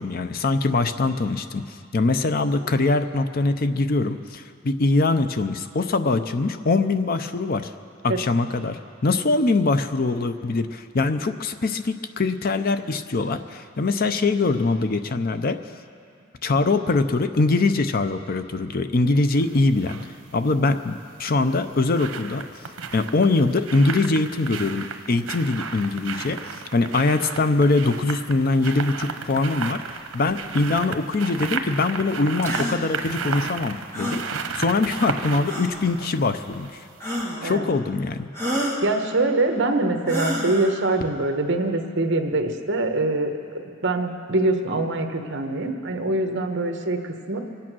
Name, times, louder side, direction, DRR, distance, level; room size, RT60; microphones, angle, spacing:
voice 1, 0.0-7.7 8.0-15.6 16.4-20.0 20.3-22.5 22.9-29.8 30.1-34.2 34.5-36.8 37.4-38.3, left 3 dB, 45° left, 9 dB, 0.6 m, -23 dB
sound 1, 19.3-20.1 21.3-36.8 37.2-37.3, right 5 dB, 90° right, 0.9 m, -34 dB
sound 2, 32.4-32.8 33.9-34.3 35.4-35.9 37.0-37.5 38.3-38.9 40.0-40.7, equal, 15° left, 1.8 m, -28 dB
voice 2, 38.8-47.4, right 2 dB, 55° right, 5 dB, 1.2 m, -24 dB
24.0 x 8.7 x 6.1 m, 2.3 s
head